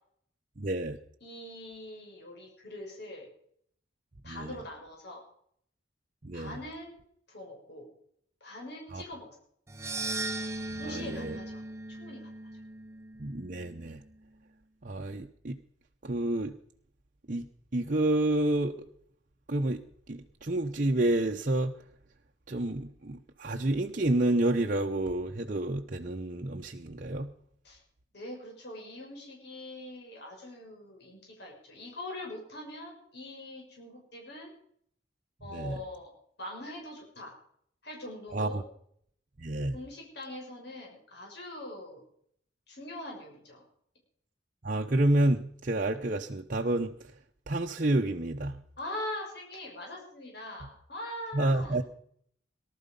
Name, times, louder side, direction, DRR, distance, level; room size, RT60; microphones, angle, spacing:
voice 1, 0.6-1.0 4.2-4.5 6.2-6.6 8.9-9.0 10.7-11.4 13.2-14.0 14.8-15.6 16.0-16.6 17.3-17.5 17.7-18.9 19.5-21.8 22.5-27.3 35.5-35.8 38.3-38.6 39.4-39.8 44.6-46.9 47.5-48.6 51.3-51.8, right 1 dB, 45° right, 0.9 m, -29 dB
voice 2, 1.2-3.3 4.2-5.2 6.3-7.0 7.3-7.9 8.4-9.3 10.8-11.6 12.0-12.3 27.6-27.8 28.1-34.5 35.4-36.1 36.4-37.3 37.8-38.6 39.7-42.0 42.7-43.6 48.8-51.8, left 1 dB, 60° left, 6.2 m, -42 dB
sound 1, 9.7-14.0, right 2 dB, 15° right, 1.1 m, -38 dB
19.0 x 12.5 x 5.4 m
head